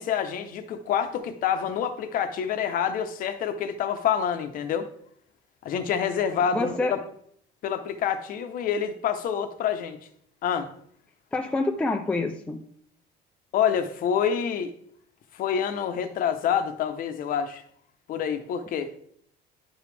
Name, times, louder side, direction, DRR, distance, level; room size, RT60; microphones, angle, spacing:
voice 1, 0.0-4.9 5.6-7.0 7.6-10.0 10.4-10.7 13.5-14.7 15.3-17.6 18.1-18.9, left 8 dB, 45° left, 0.7 m, -27 dB
voice 2, 6.5-7.0 11.3-12.6, left 2 dB, 5° left, 0.3 m, -27 dB
10.5 x 5.1 x 3.3 m
cardioid pair, 170°, 20 cm